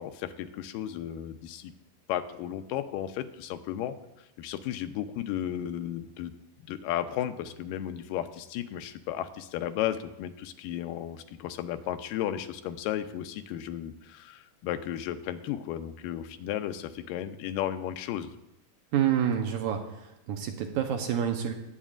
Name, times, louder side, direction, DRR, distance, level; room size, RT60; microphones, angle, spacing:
voice 1, 0.0-1.7 2.1-4.0 4.4-6.3 6.6-18.3, left 11 dB, 85° left, 9 dB, 2.3 m, -34 dB
voice 2, 18.9-21.5, right 9 dB, 75° right, 4 dB, 2.1 m, -28 dB
20.0 x 8.2 x 2.5 m, 0.92 s
omnidirectional pair, 3.8 m